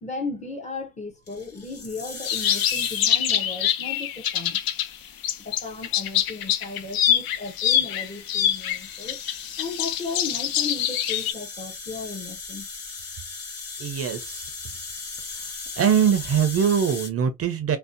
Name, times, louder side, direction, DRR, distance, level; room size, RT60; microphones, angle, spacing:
voice 1, 0.0-4.6 5.4-9.2 9.6-12.7, left 3 dB, 20° left, 0.5 m, -35 dB
sound 1, 1.3-3.2 4.3-17.1, left 4 dB, 40° left, 1.2 m, -39 dB
sound 2, 2.2-4.9 5.2-11.3, left 10 dB, 85° left, 0.5 m, -25 dB
voice 2, 13.8-14.5 15.8-17.8, right 8 dB, 45° right, 0.4 m, -22 dB
2.6 x 2.0 x 2.4 m
wide cardioid pair, 170°, 35 cm